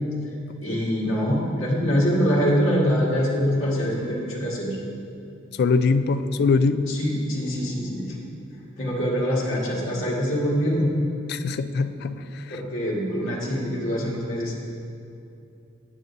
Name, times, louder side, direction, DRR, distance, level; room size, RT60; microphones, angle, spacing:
voice 1, 0.6-4.7 6.9-8.1 8.8-10.9 12.5-14.5, equal, 70° left, -7 dB, 1.7 m, -24 dB
voice 2, 5.6-6.9 11.3-12.2, left 4 dB, 55° left, 11 dB, 0.3 m, -22 dB
8.9 x 8.4 x 2.6 m, 2.6 s
head